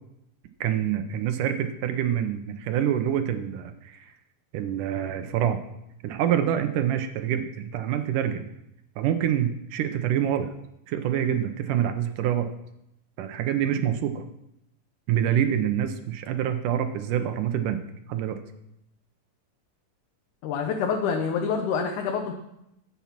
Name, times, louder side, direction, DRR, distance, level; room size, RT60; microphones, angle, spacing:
voice 1, 0.6-4.1 4.5-5.6 6.0-8.5 9.0-10.5 10.9-12.5 13.2-14.3 15.1-17.8 18.1-18.4, right 10 dB, 80° right, 8 dB, 2.5 m, -26 dB
voice 2, 20.4-22.3, left 6 dB, 75° left, 2 dB, 2.4 m, -27 dB
15.5 x 7.3 x 5.9 m, 0.83 s
omnidirectional pair, 3.7 m